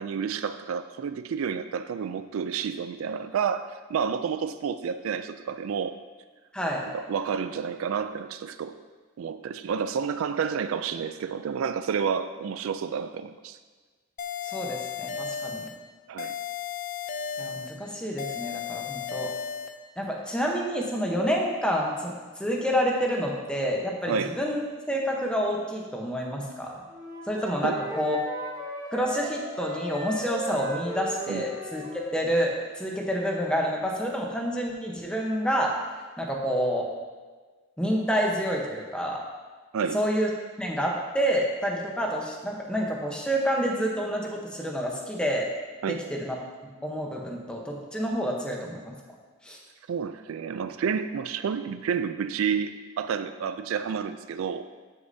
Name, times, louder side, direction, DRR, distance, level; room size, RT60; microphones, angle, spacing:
voice 1, 0.0-6.0 6.9-8.8 9.2-13.6 16.1-16.4 24.1-24.4 27.6-27.9 31.3-31.4 39.7-40.0 45.8-46.0 49.9-54.7, right 6 dB, 80° right, 11 dB, 0.3 m, -30 dB
voice 2, 6.5-6.9 14.4-15.7 17.4-19.3 20.0-22.1 22.4-24.6 24.9-26.7 27.3-28.2 28.9-31.8 32.1-35.8 36.2-36.9 37.8-39.2 39.9-40.3 40.6-45.5 45.9-46.4 46.8-48.9 49.4-49.6, equal, 5° left, -1 dB, 0.9 m, -28 dB
sound 1, 14.2-15.8 16.2-17.8 18.2-19.8, left 7 dB, 40° left, 0.4 m, -34 dB
Wind instrument woodwind instrument, 26.9-32.1, right 1 dB, 20° right, 1.1 m, -37 dB
13.0 x 6.5 x 2.7 m, 1.4 s
head